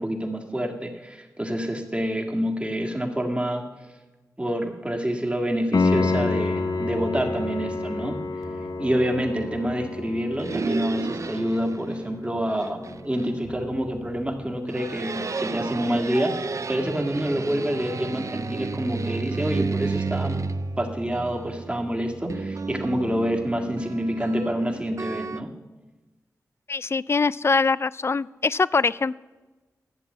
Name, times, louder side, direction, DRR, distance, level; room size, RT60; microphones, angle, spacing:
voice 1, 0.0-3.7 4.4-8.2 8.8-20.5 20.8-25.5, equal, 15° right, 3 dB, 1.9 m, -27 dB
Piano, 5.7-16.4 19.7-19.8, left 3 dB, 60° left, 0.7 m, -30 dB
sound 1, 5.9-25.4, right 4 dB, 50° right, 0.5 m, -33 dB
voice 2, 26.7-29.1, left 4 dB, 40° left, 20 dB, 0.3 m, -23 dB
11.5 x 7.6 x 8.2 m, 1.2 s
cardioid pair, 55°, 7 cm